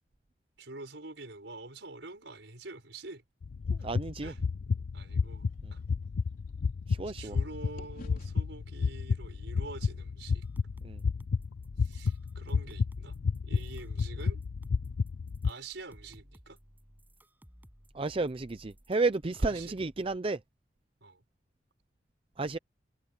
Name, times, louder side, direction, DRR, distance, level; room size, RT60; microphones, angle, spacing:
voice 1, 0.6-3.2 4.2-4.4 4.9-5.8 7.1-10.4 11.8-13.2 13.4-14.4 15.4-16.6 19.4-19.7 21.0-21.2, right 3 dB, 70° right, 5.5 m, -46 dB
sound 1, 3.4-15.5, left 5 dB, 85° left, 0.5 m, -32 dB
voice 2, 3.8-4.3 6.9-7.4 10.8-11.0 17.9-20.4 22.4-22.6, right 3 dB, 30° right, 0.5 m, -31 dB
sound 2, 5.1-7.4 7.8-12.0, left 1 dB, 50° left, 3.6 m, -56 dB
sound 3, 10.4-20.2, equal, 10° right, 7.3 m, -57 dB
head